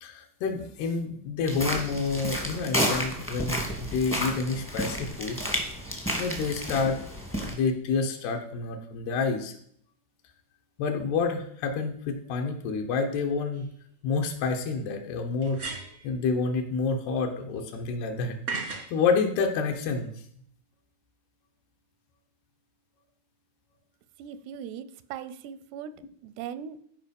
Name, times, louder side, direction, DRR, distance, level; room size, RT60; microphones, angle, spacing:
voice 1, 0.0-5.4 6.2-7.0 7.4-9.6 10.8-13.7 14.0-15.6 16.0-18.4 18.7-20.1, left 4 dB, 80° left, 3 dB, 3.1 m, -28 dB
sound 1, 1.5-7.5, equal, 15° left, 0.5 m, -31 dB
sound 2, 13.5-13.6 15.4-16.1 18.5-18.9, right 4 dB, 60° right, 0.7 m, -35 dB
voice 2, 24.2-26.0 26.2-26.8, right 8 dB, 85° right, 14 dB, 2.7 m, -39 dB
13.5 x 5.2 x 5.3 m, 0.64 s
omnidirectional pair, 4.7 m